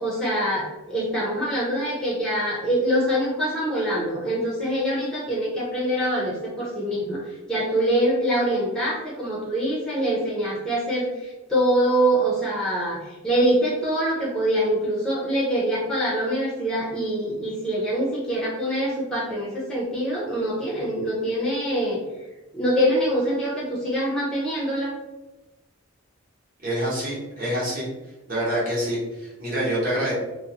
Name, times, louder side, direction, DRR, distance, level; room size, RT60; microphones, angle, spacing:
voice 1, 0.0-22.0 22.5-24.9, equal, 5° left, -6 dB, 0.5 m, -24 dB
voice 2, 26.6-27.9 28.3-30.1, right 1 dB, 40° right, -7 dB, 0.9 m, -26 dB
2.5 x 2.0 x 2.8 m, 1.1 s
head